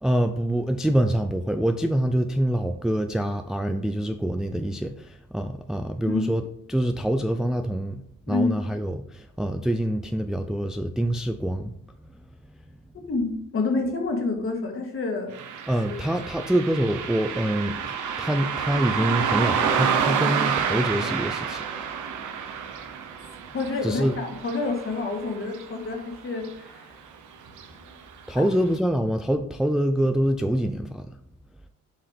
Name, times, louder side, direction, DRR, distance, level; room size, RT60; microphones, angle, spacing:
voice 1, 0.0-6.4 6.7-11.7 12.0-12.1 15.7-21.7 23.8-24.2 28.3-31.1, right 1 dB, ahead, 0.4 m, -25 dB
voice 2, 8.3-8.6 12.9-15.3 15.9-16.0 23.5-26.9 28.4-28.5, left 3 dB, 45° left, 1.9 m, -28 dB
Car passing by, 15.3-26.1 26.4-26.5 27.5-27.7 28.1-28.2 28.7-28.8, right 7 dB, 75° right, 1.0 m, -29 dB
7.3 x 4.7 x 3.5 m
cardioid pair, 90°, 30 cm